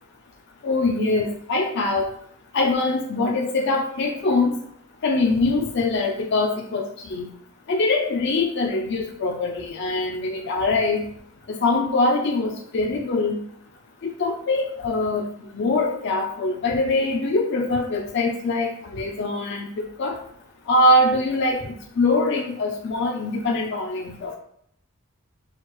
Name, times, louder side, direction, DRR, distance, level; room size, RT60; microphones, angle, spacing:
voice 1, 0.6-2.1 2.5-4.6 5.0-7.3 7.7-11.0 11.5-13.4 14.0-15.3 15.5-20.2 20.7-24.4, left 2 dB, 50° left, 1 dB, 0.4 m, -23 dB
6.3 x 2.3 x 3.0 m, 0.68 s
head